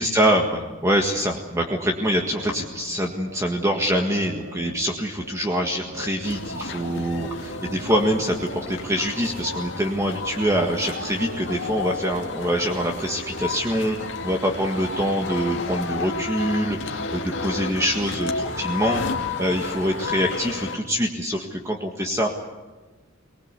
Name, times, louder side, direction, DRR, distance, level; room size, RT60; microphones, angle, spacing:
voice 1, 0.0-14.0 14.2-22.3, equal, 15° right, 2 dB, 1.7 m, -25 dB
sound 1, 1.7-15.7, right 1 dB, 75° right, 5.9 m, -44 dB
sound 2, 6.2-20.8, left 3 dB, 65° left, 2.1 m, -32 dB
24.0 x 19.5 x 8.3 m, 1.3 s
head